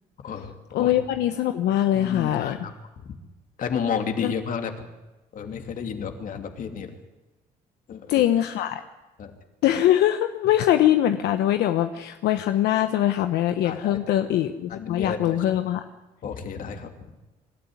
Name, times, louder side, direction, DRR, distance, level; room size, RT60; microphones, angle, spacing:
voice 1, 0.7-2.6 4.2-4.3 8.1-8.8 9.6-15.8, left 12 dB, 80° left, 8 dB, 1.1 m, -22 dB
voice 2, 1.9-2.7 3.0-3.2 3.6-4.7 5.3-6.9 7.9-8.2 9.2-9.3 13.6-14.0 14.7-15.4 16.2-16.9, left 6 dB, 55° left, 5 dB, 2.9 m, -31 dB
25.5 x 13.5 x 9.7 m, 1.1 s
cardioid pair, 110°, 17 cm